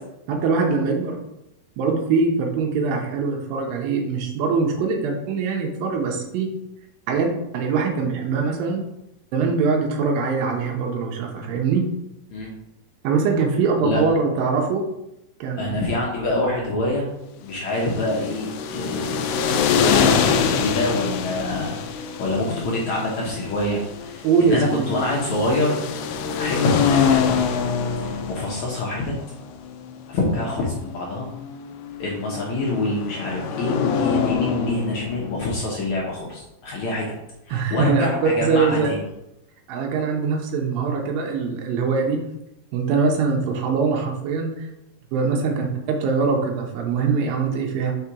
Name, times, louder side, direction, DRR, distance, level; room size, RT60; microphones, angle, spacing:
voice 1, 0.3-1.2 1.8-6.5 7.1-8.8 9.3-11.9 13.0-14.9 15.4-15.8 24.2-24.9 37.5-38.9 39.7-42.2 42.7-44.7 45.1-48.0, right 4 dB, 75° right, 2 dB, 2.5 m, -22 dB
voice 2, 15.6-17.1 17.4-21.8 22.2-25.8 26.4-27.3 28.0-29.1 30.1-31.3 32.0-37.1 37.5-39.0, left 2 dB, 65° left, -3 dB, 1.9 m, -26 dB
sound 1, 17.7-35.6, left 7 dB, 80° left, 2.0 m, -25 dB
5.9 x 4.3 x 4.8 m, 0.87 s
omnidirectional pair, 4.3 m